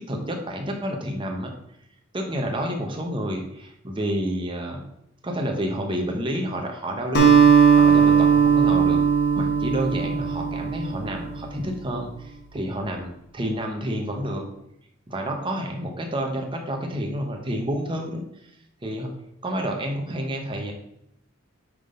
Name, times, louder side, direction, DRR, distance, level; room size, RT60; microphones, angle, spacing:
voice 1, 0.0-1.5 2.1-4.8 5.2-9.0 9.3-14.5 15.1-18.2 18.8-19.1 19.4-20.7, equal, 25° right, 2 dB, 1.0 m, -29 dB
Acoustic guitar, 7.1-11.6, right 6 dB, 55° left, 1.3 m, -18 dB
9.3 x 3.8 x 3.8 m, 0.78 s
head